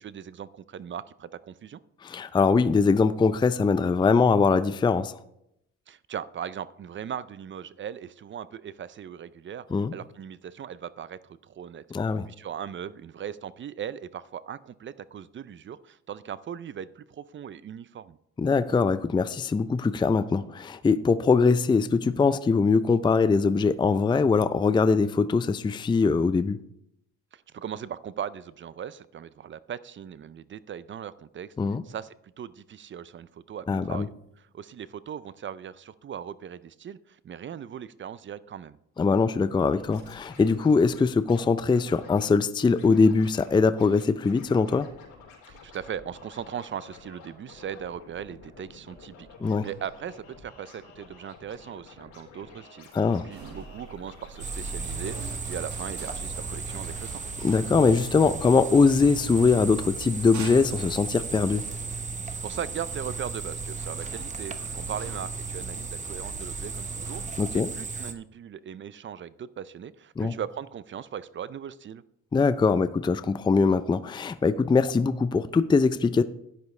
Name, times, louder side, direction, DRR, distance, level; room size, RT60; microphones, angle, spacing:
voice 1, 0.0-1.8 5.9-9.7 9.9-11.9 12.3-18.2 27.3-31.5 31.8-34.1 34.5-38.8 45.5-52.9 53.2-57.3 62.4-72.0, right 8 dB, 40° right, 0.5 m, -39 dB
voice 2, 2.0-5.2 9.7-9.9 11.9-12.3 18.4-26.6 31.6-31.8 33.7-34.1 39.0-44.9 49.4-49.7 52.9-53.3 57.4-61.7 67.4-67.7 70.2-70.3 72.3-76.2, left 4 dB, 15° left, 0.4 m, -22 dB
Scratching (performance technique), 39.7-41.4 41.7-42.3 42.7-43.5 43.8-58.8 59.0-59.1, left 4 dB, 75° left, 4.0 m, -50 dB
sound 1, 53.3-67.6, right 4 dB, 70° right, 1.7 m, -42 dB
sound 2, 54.4-68.1, right 4 dB, 25° right, 0.9 m, -36 dB
12.0 x 10.5 x 3.2 m
cardioid pair, 90°, 30 cm